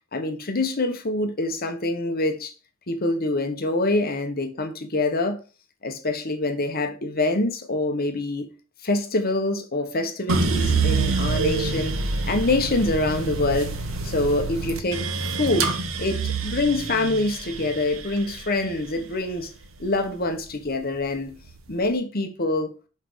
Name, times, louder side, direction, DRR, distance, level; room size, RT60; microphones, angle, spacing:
voice 1, 0.1-2.5 2.9-5.4 5.8-8.5 8.8-12.0 12.3-13.8 14.0-15.1 15.4-15.7 16.0-19.5 19.8-21.3 21.7-22.7, left 2 dB, 45° left, 1.2 m, -25 dB
sound 1, 10.3-20.5 20.9-21.7, right 4 dB, 75° right, 1.2 m, -27 dB
6.0 x 5.5 x 6.2 m
head